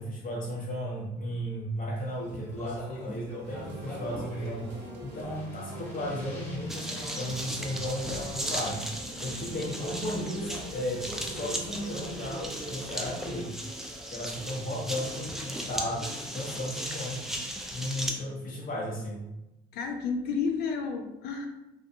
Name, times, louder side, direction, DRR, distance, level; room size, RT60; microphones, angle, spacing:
voice 1, 0.0-4.7 5.0-8.8 9.2-13.5 14.1-17.3 17.7-19.2, equal, 50° left, -3 dB, 1.0 m, -35 dB
Speech, 2.0-14.4, left 2 dB, 15° left, 1.1 m, -45 dB
sound 1, 3.4-13.5, right 3 dB, 75° right, 0.5 m, -44 dB
sound 2, 6.7-18.1, right 1 dB, ahead, 0.4 m, -37 dB
voice 2, 19.7-21.5, left 5 dB, 65° left, 4 dB, 0.4 m, -31 dB
2.4 x 2.2 x 2.6 m, 0.94 s
supercardioid pair, 85°, 18 cm